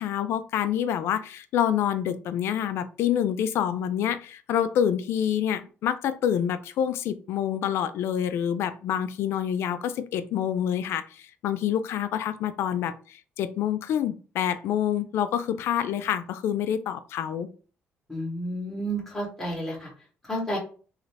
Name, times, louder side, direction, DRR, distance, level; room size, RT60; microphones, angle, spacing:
voice 1, 0.0-17.5, left 9 dB, 60° left, 0.3 m, -27 dB
voice 2, 18.1-19.9 20.3-20.6, right 1 dB, 5° left, 1.0 m, -31 dB
3.1 x 2.5 x 3.2 m
cardioid pair, 180°, 5 cm